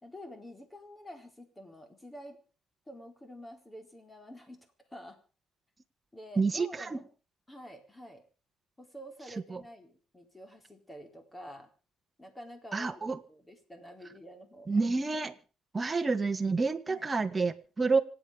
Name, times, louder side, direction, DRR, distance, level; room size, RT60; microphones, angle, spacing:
voice 1, 0.0-2.4 2.9-4.7 4.9-5.2 6.1-7.0 7.5-8.2 8.8-11.7 12.2-13.0 13.3-14.7 16.9-17.0, equal, 15° left, 5 dB, 4.4 m, -48 dB
voice 2, 6.4-7.0 9.5-9.6 12.7-13.2 14.7-15.3 15.7-18.0, right 4 dB, 20° right, 7 dB, 1.6 m, -29 dB
26.5 x 8.9 x 5.1 m, 0.37 s
cardioid pair, 100°, 0 cm